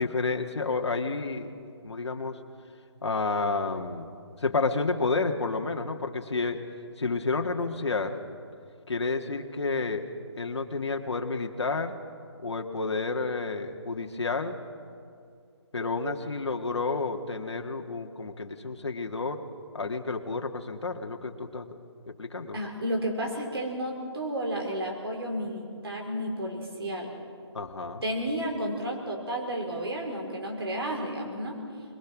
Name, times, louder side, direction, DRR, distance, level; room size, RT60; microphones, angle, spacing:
voice 1, 0.0-1.5 1.8-2.4 3.0-4.1 4.4-6.6 7.0-8.2 8.9-10.0 10.4-12.0 12.4-14.6 15.7-19.4 19.7-21.7 22.1-22.6 27.5-28.0, left 3 dB, 70° left, 4 dB, 1.9 m, -30 dB
voice 2, 22.5-27.1 28.0-31.6, equal, 60° right, 0 dB, 5.0 m, -32 dB
22.0 x 22.0 x 6.1 m, 2.3 s
hypercardioid pair, 180°, 15 cm